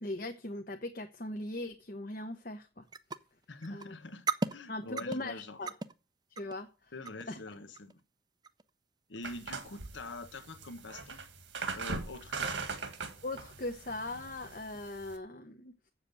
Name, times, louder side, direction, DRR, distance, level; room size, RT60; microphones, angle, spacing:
voice 1, 0.0-2.9 3.7-3.9 4.7-5.7 6.3-6.9 7.3-7.4 13.2-15.7, left 2 dB, 50° left, 1.0 m, -40 dB
sound 1, 2.9-3.2 3.4-3.9 4.1-4.5 5.0-5.2 5.7-5.9 6.4-6.6 7.1-7.3 7.7-8.0 8.4-8.7 9.1-9.3 9.8-9.9, right 4 dB, 20° right, 0.5 m, -34 dB
voice 2, 3.5-5.6 6.9-8.0 9.1-11.2 11.7-12.6, left 2 dB, 85° left, 1.2 m, -45 dB
sound 2, 9.2-15.2, right 4 dB, 85° right, 1.7 m, -40 dB
7.7 x 7.4 x 8.3 m
head